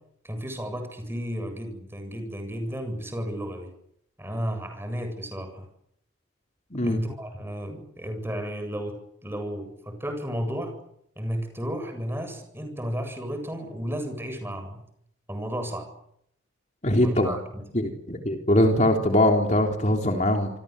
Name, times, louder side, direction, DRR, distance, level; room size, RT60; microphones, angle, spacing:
voice 1, 0.2-3.7 4.2-5.7 6.8-10.8 11.2-14.8 15.3-15.9 17.0-17.7, equal, 10° right, 6 dB, 7.8 m, -33 dB
voice 2, 16.8-17.4 17.7-20.5, left 1 dB, 35° left, 4 dB, 3.6 m, -22 dB
28.5 x 24.5 x 8.3 m, 0.74 s
head